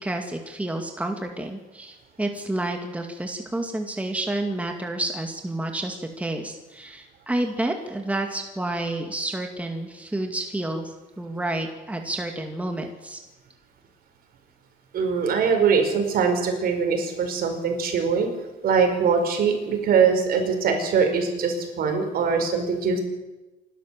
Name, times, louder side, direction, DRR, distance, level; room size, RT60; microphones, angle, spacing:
voice 1, 0.0-13.2, right 1 dB, 10° right, 4 dB, 2.3 m, -30 dB
voice 2, 14.9-18.3 18.6-23.0, right 5 dB, 60° right, 5 dB, 5.1 m, -22 dB
28.0 x 12.5 x 7.7 m, 1.1 s
cardioid pair, 110°, 17 cm